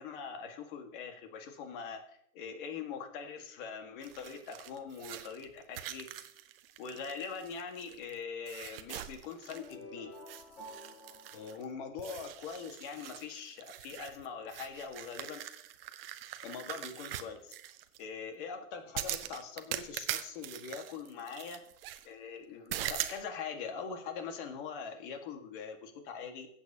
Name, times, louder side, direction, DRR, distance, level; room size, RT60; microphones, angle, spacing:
voice 1, 0.0-6.3 6.8-10.1 11.3-15.4 16.4-17.5 18.0-21.6 22.1-26.5, left 6 dB, 35° left, 5 dB, 1.7 m, -42 dB
sound 1, 4.0-8.1 8.5-9.8 10.1-11.6 12.0-18.0 18.9-22.1 22.7-23.2, right 12 dB, 40° right, 0.7 m, -42 dB
sound 2, 9.5-12.5, left 1 dB, 75° left, 5.4 m, -51 dB
21.5 x 8.1 x 2.8 m, 0.71 s
hypercardioid pair, 155°, 44 cm